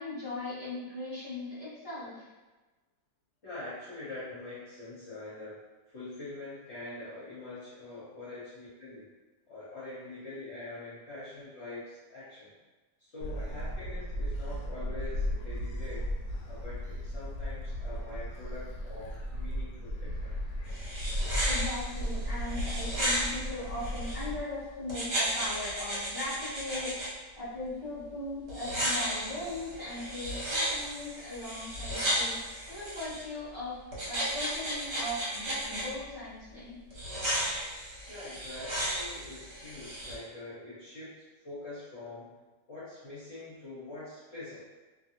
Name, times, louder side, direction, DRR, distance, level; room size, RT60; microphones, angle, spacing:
voice 1, 0.0-2.2 20.7-27.0 27.3-36.8, left 2 dB, 20° right, -12 dB, 0.7 m, -39 dB
voice 2, 3.4-9.1 9.5-12.5 13.0-16.1 16.4-20.3 38.1-42.3 42.7-44.7, left 2 dB, 50° left, -10 dB, 0.9 m, -44 dB
Gull seagull, 13.2-24.4, equal, 75° left, 1.0 m, -35 dB
sound 1, 20.7-24.2 24.9-27.1 28.5-33.2 33.9-35.8 36.9-40.1, equal, 45° right, 1.0 m, -34 dB
2.6 x 2.6 x 2.8 m, 1.2 s
omnidirectional pair, 1.9 m